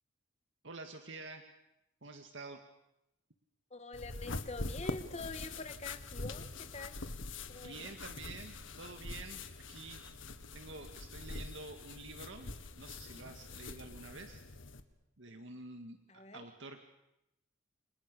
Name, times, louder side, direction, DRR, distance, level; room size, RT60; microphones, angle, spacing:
voice 1, 0.6-1.4 2.0-2.6 7.6-9.4 9.7-10.0 10.5-14.4 15.2-16.8, right 3 dB, 65° right, 5 dB, 2.0 m, -48 dB
voice 2, 3.7-7.0 7.5-7.9 16.1-16.5, left 3 dB, 30° left, 9 dB, 1.7 m, -45 dB
sound 1, 3.9-14.8, left 3 dB, 75° left, 1.9 m, -44 dB
30.0 x 26.0 x 6.9 m, 0.87 s
head